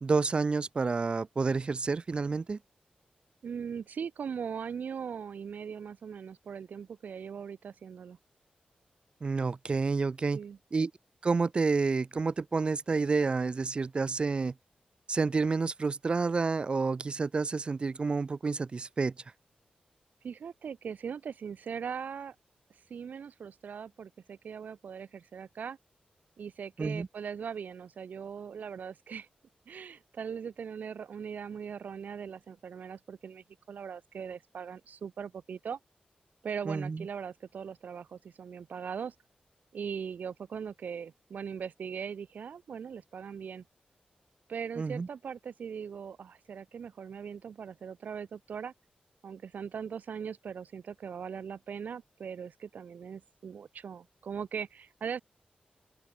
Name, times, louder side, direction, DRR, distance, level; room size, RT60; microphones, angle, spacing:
voice 1, 0.0-2.6 9.2-10.4 10.7-10.9 11.2-14.5 15.1-19.1 26.8-27.1 36.7-37.1 44.8-45.1, right 4 dB, 35° right, 0.4 m, -29 dB
voice 2, 3.4-8.2 10.3-10.6 20.2-22.3 22.9-25.8 26.4-29.3 29.7-35.8 36.4-39.1 39.7-43.6 44.5-48.7 49.2-55.2, right 7 dB, 80° right, 1.6 m, -40 dB
open air
wide cardioid pair, 140°, 3 cm